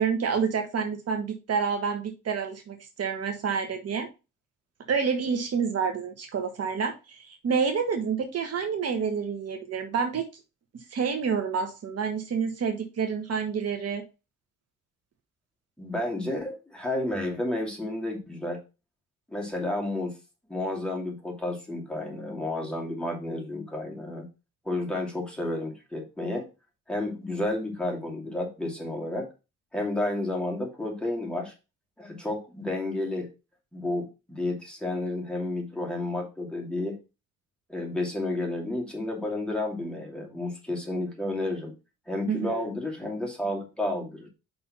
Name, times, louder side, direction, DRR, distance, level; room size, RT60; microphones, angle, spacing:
voice 1, 0.0-4.1 4.9-10.3 10.9-14.0 42.3-42.7, right 6 dB, 55° right, 5 dB, 1.4 m, -28 dB
voice 2, 15.8-18.6 19.3-20.2 20.5-24.3 24.6-26.5 26.9-29.3 29.7-31.5 32.0-33.3 33.7-37.0 37.7-41.7 42.1-44.3, left 1 dB, 5° left, -1 dB, 2.5 m, -31 dB
5.6 x 3.7 x 5.9 m, 0.29 s
cardioid pair, 90°, 30 cm